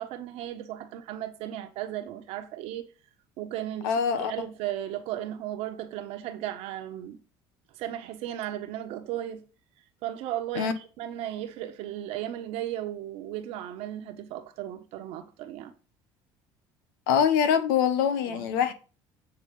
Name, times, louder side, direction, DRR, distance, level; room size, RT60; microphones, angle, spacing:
voice 1, 0.0-2.8 3.4-7.2 7.7-9.4 10.0-15.7 18.3-18.7, right 12 dB, 75° right, 1.3 m, -35 dB
voice 2, 3.8-4.3 10.5-10.7 17.1-18.7, left 8 dB, 90° left, 1.0 m, -24 dB
8.1 x 4.1 x 5.4 m
supercardioid pair, 90°, 11 cm